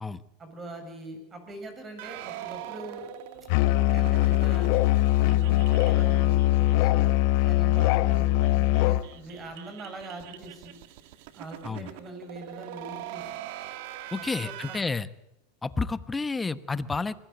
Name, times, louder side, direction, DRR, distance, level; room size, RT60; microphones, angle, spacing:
voice 1, 0.4-3.1 3.6-4.7 5.2-7.1 7.4-10.8 11.3-13.4 14.2-14.8, right 2 dB, 25° right, 7 dB, 6.7 m, -42 dB
sound 1, 2.0-7.1 7.3-7.4 7.7-7.8 8.1-14.8, right 13 dB, 65° right, 1.9 m, -43 dB
Musical instrument, 3.5-9.1, left 15 dB, 60° left, 0.9 m, -22 dB
voice 2, 14.1-15.1 15.6-17.2, left 4 dB, 15° left, 15 dB, 1.1 m, -30 dB
24.0 x 18.5 x 8.0 m, 0.89 s
supercardioid pair, 120°, 0 cm